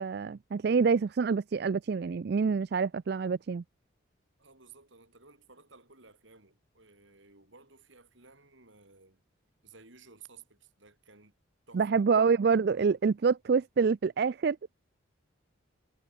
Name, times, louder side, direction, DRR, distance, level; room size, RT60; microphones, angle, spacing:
voice 1, 0.0-3.6 11.7-14.6, right 5 dB, 50° right, 0.4 m, -26 dB
voice 2, 4.4-9.2 9.6-11.3 11.7-12.1, right 4 dB, 70° right, 6.1 m, -56 dB
head